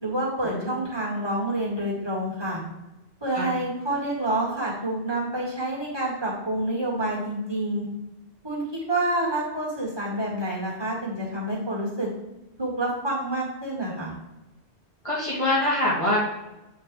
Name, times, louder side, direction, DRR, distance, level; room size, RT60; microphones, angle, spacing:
voice 1, 0.0-2.6 3.2-7.9 8.4-12.1 12.6-14.1, right 1 dB, 20° right, -5 dB, 2.0 m, -28 dB
voice 2, 15.0-16.2, left 1 dB, 30° left, -8 dB, 2.0 m, -24 dB
7.9 x 3.8 x 3.5 m, 0.97 s
omnidirectional pair, 1.1 m